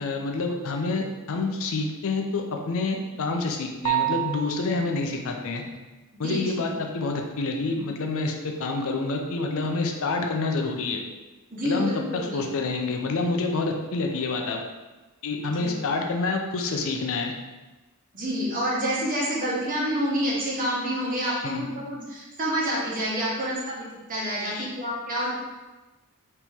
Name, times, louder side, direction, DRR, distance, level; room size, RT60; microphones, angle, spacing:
voice 1, 0.0-5.6 6.2-11.0 11.6-14.6 15.2-17.3 21.4-21.6 24.4-24.7, left 3 dB, 65° left, 2 dB, 0.5 m, -28 dB
sound 1, 3.8-4.9, right 15 dB, 85° right, 0.4 m, -27 dB
voice 2, 6.1-6.8 11.5-12.6 15.5-15.8 18.1-25.4, equal, 40° right, -5 dB, 1.1 m, -28 dB
4.4 x 2.9 x 3.5 m, 1.1 s
head